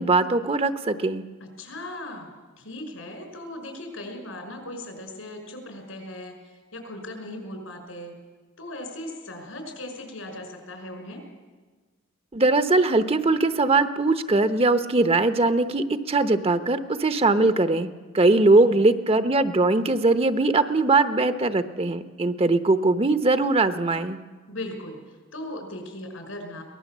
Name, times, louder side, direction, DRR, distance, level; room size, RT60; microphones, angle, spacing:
voice 1, 0.0-1.2 12.3-17.9 18.1-24.2, right 2 dB, 30° right, 10 dB, 0.8 m, -21 dB
voice 2, 1.4-8.1 8.6-11.2 18.4-18.9 24.5-26.6, left 1 dB, 80° left, 4 dB, 5.6 m, -38 dB
23.5 x 19.0 x 7.4 m, 1.4 s
head